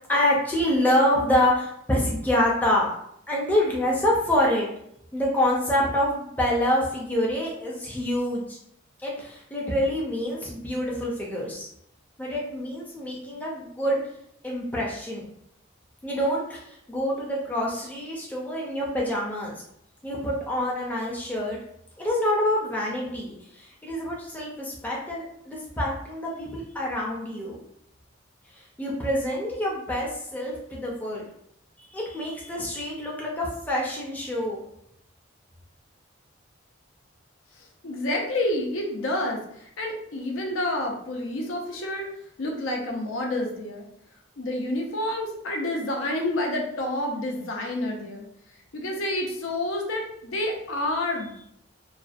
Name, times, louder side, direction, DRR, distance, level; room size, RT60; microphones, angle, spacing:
voice 1, 0.1-3.0 3.3-4.7 5.1-8.6 9.0-11.7 12.2-14.0 14.4-15.2 16.0-19.6 20.0-21.6 22.0-27.6 28.8-31.2 31.8-34.6, left 1 dB, 10° left, -4 dB, 0.4 m, -26 dB
voice 2, 37.8-42.1 42.4-43.9 44.4-48.3 48.7-51.4, left 1 dB, 85° left, 1 dB, 0.5 m, -29 dB
2.4 x 2.1 x 2.4 m, 0.74 s
head